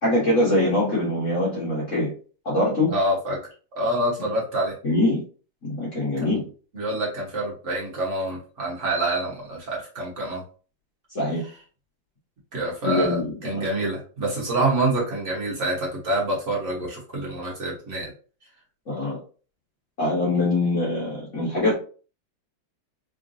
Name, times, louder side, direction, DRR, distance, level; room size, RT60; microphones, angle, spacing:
voice 1, 0.0-2.1 2.4-2.9 4.8-5.2 5.6-6.4 11.1-11.4 12.8-13.7 18.9-19.2 20.0-21.7, left 1 dB, 45° left, 1.4 m, -23 dB
voice 2, 2.9-3.4 3.7-4.7 6.2-6.3 6.7-10.4 12.5-18.1, right 1 dB, 40° right, 1.6 m, -26 dB
3.7 x 3.5 x 2.7 m
omnidirectional pair, 2.1 m